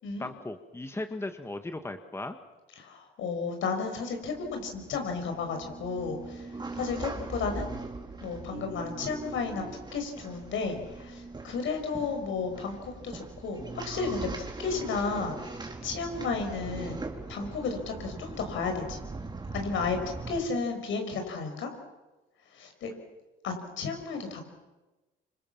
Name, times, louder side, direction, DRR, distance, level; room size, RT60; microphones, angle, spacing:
voice 1, 0.2-2.4, left 2 dB, 10° left, 8 dB, 1.6 m, -37 dB
voice 2, 2.8-7.6 8.2-9.6 9.9-14.3 14.6-17.0 17.3-19.0 19.5-20.0 20.3-21.7 22.5-22.9 23.4-24.4, left 4 dB, 75° left, 5 dB, 6.2 m, -33 dB
sound 1, 4.2-20.4, right 3 dB, 20° right, 4.2 m, -40 dB
27.0 x 26.5 x 7.3 m, 1.1 s
cardioid pair, 90°, 20 cm